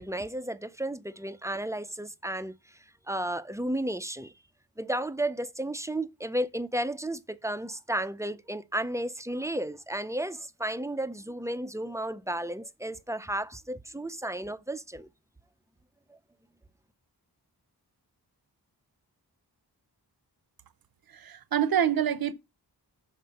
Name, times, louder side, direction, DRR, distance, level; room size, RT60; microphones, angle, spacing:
voice 1, 0.0-2.8 3.1-4.3 4.8-15.1 16.1-16.2, right 1 dB, 10° right, 0.5 m, -33 dB
voice 2, 21.1-22.3, right 9 dB, 60° right, 0.7 m, -26 dB
6.9 x 4.3 x 6.5 m
wide cardioid pair, 95°, 41 cm